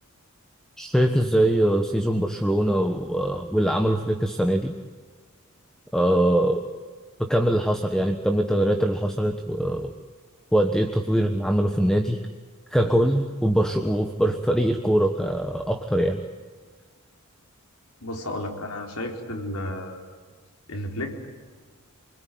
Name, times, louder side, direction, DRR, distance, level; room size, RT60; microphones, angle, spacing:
voice 1, 0.8-4.7 5.9-6.7 7.3-9.9 10.5-12.2 12.7-16.2, right 1 dB, 5° left, 5 dB, 1.3 m, -22 dB
voice 2, 18.0-20.0 20.7-21.3, left 1 dB, 80° left, 3 dB, 4.5 m, -32 dB
28.5 x 21.5 x 9.5 m, 1.5 s
head